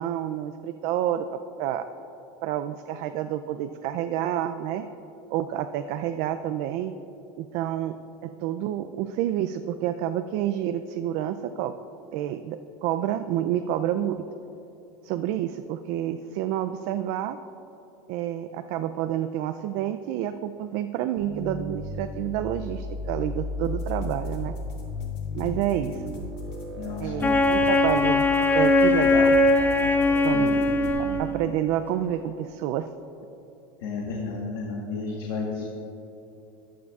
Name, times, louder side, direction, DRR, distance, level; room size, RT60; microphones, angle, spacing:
voice 1, 0.0-1.8 2.4-4.9 5.3-6.9 7.4-8.0 8.2-11.7 12.1-14.2 15.0-17.4 18.1-24.6 25.3-26.0 27.0-28.2 28.5-29.4 30.2-30.6 31.2-32.9, right 11 dB, 60° right, 8 dB, 0.4 m, -29 dB
sound 1, 21.2-31.2, left 2 dB, 85° right, 1.8 m, -35 dB
sound 2, 23.6-30.9, left 4 dB, 55° left, 2.1 m, -41 dB
voice 2, 26.8-27.4 30.3-30.6 33.8-35.6, left 4 dB, 75° left, -1 dB, 1.3 m, -32 dB
Wind instrument woodwind instrument, 27.2-31.6, left 2 dB, 15° left, 0.6 m, -21 dB
14.5 x 9.4 x 2.4 m, 3.0 s
supercardioid pair, 125°, 13 cm